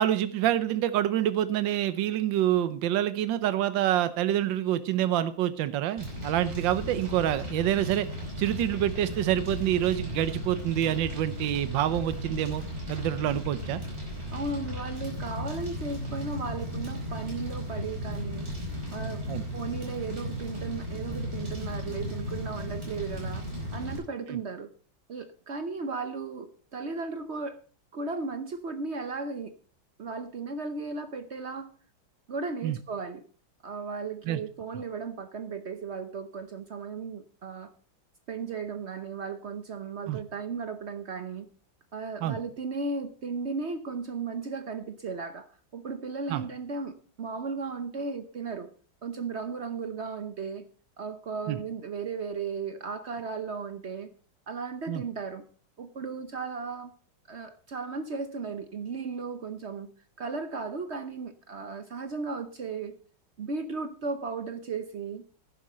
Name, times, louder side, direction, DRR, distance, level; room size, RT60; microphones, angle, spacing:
voice 1, 0.0-8.1 8.4-13.8 19.3-19.5 24.3-24.4 32.6-32.8 34.3-34.4 40.1-40.2 42.2-42.4 46.3-46.4 51.5-51.6 54.9-55.0, right 12 dB, 70° right, 13 dB, 1.5 m, -27 dB
Fire, 6.0-24.0, left 1 dB, 35° right, 5.2 m, -36 dB
voice 2, 14.3-18.5 18.9-19.2 19.5-23.4 23.7-24.7 25.1-27.6 27.9-29.5 30.0-31.7 32.3-33.2 33.6-37.7 38.3-41.5 41.9-48.7 49.0-50.6 51.0-54.1 54.5-55.4 55.8-56.9 57.3-59.9 60.2-63.0 63.4-65.2, right 4 dB, 55° right, 9 dB, 0.7 m, -35 dB
11.0 x 10.5 x 4.3 m, 0.40 s
omnidirectional pair, 2.2 m